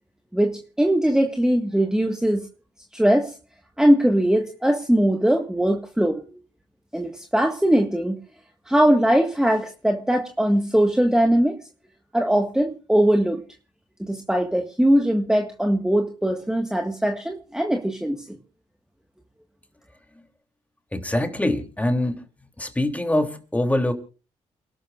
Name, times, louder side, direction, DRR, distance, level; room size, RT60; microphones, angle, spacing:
voice 1, 0.3-2.5 2.9-3.3 3.8-6.2 6.9-8.2 8.7-11.6 12.1-13.4 14.0-18.2, right 1 dB, 5° right, 1.8 m, -20 dB
voice 2, 20.9-22.2 22.6-23.9, left 1 dB, 10° left, 3.2 m, -24 dB
29.0 x 12.5 x 2.6 m
cardioid pair, 65°, 12 cm